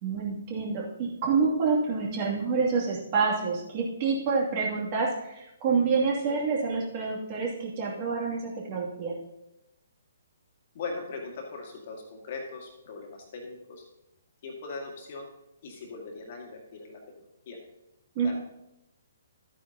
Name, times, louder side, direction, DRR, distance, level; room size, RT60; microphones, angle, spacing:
voice 1, 0.0-9.1 18.1-18.3, right 4 dB, 35° right, -3 dB, 2.6 m, -27 dB
voice 2, 10.7-13.8 14.4-15.3 15.6-17.6 18.2-18.3, left 4 dB, 45° left, 1 dB, 2.1 m, -40 dB
12.5 x 9.2 x 2.9 m, 0.87 s
figure-of-eight pair, 130°, 0 cm